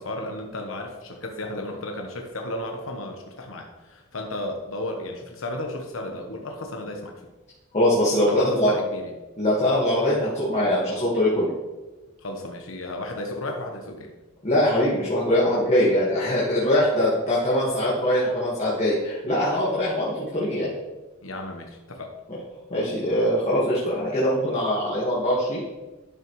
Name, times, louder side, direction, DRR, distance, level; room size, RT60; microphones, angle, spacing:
voice 1, 0.0-7.2 8.3-9.1 12.2-14.1 21.2-22.1, left 1 dB, 85° left, 2 dB, 1.0 m, -33 dB
voice 2, 7.7-8.7 9.4-11.5 14.4-20.7 22.7-25.6, left 1 dB, 35° left, -7 dB, 1.7 m, -22 dB
11.5 x 5.9 x 3.1 m, 1.1 s
head